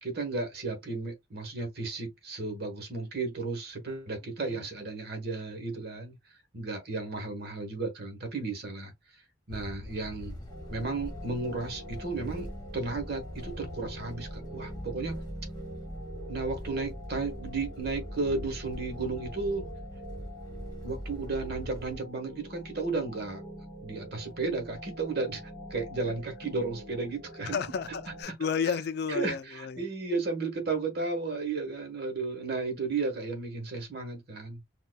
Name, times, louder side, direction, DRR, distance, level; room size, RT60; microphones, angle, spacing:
voice 1, 0.0-6.2 6.5-8.9 9.5-10.3 10.7-12.5 12.7-15.2 16.3-19.6 20.8-23.4 23.8-25.4 25.7-27.6 28.3-28.4 29.1-34.6, right 3 dB, 55° right, 1.2 m, -33 dB
sound 1, 9.5-22.0, equal, 20° left, 1.4 m, -42 dB
sound 2, 10.5-28.2, right 1 dB, ahead, 2.0 m, -45 dB
voice 2, 27.5-29.8, left 6 dB, 55° left, 0.4 m, -32 dB
4.4 x 2.4 x 2.2 m
head